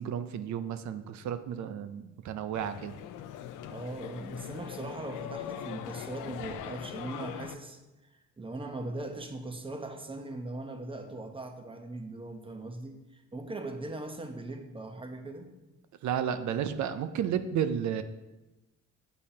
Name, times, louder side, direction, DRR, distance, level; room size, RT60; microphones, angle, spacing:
voice 1, 0.0-3.0 16.0-18.0, right 8 dB, 70° right, 11 dB, 0.5 m, -32 dB
sound 1, 2.5-7.5, left 10 dB, 85° left, 0.5 m, -41 dB
voice 2, 3.7-7.8 8.4-15.5, right 2 dB, 15° right, 5 dB, 0.9 m, -40 dB
8.4 x 5.3 x 2.8 m, 1.0 s
cardioid pair, 90°, 30 cm